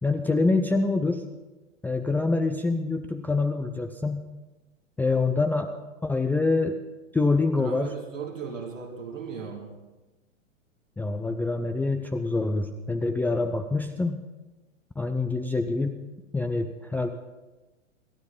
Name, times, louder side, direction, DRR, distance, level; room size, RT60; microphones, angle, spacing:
voice 1, 0.0-1.2 1.8-4.3 5.0-5.7 6.0-6.8 7.1-7.9 11.0-14.2 15.0-16.0 16.3-17.1, left 3 dB, 5° left, 6 dB, 0.6 m, -25 dB
voice 2, 7.6-9.8, right 6 dB, 80° right, 2 dB, 2.6 m, -37 dB
27.5 x 12.5 x 4.0 m, 1.1 s
figure-of-eight pair, 100°, 38 cm